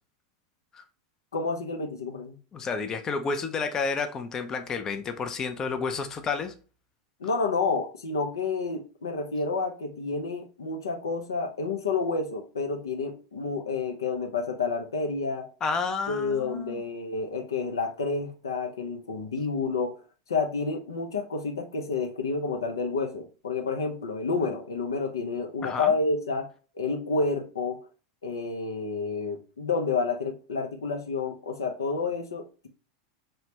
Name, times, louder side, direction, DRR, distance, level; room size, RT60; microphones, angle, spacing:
voice 1, 1.3-2.4 7.2-15.5 16.1-19.9 20.3-26.5 26.8-27.8 28.2-32.7, left 4 dB, 90° left, 0.5 m, -29 dB
voice 2, 2.5-6.5 15.6-16.8 25.6-25.9, left 4 dB, 25° left, 0.4 m, -30 dB
3.2 x 2.1 x 2.8 m
hypercardioid pair, 105°, 2 cm